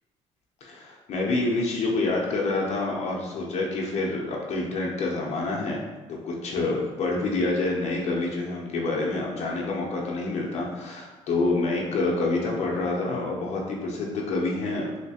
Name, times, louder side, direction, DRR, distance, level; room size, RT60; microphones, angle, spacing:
voice 1, 0.6-5.8 6.1-14.9, left 2 dB, 60° left, -2 dB, 0.6 m, -27 dB
3.1 x 2.9 x 2.8 m, 1.2 s
cardioid pair, 90°, 13 cm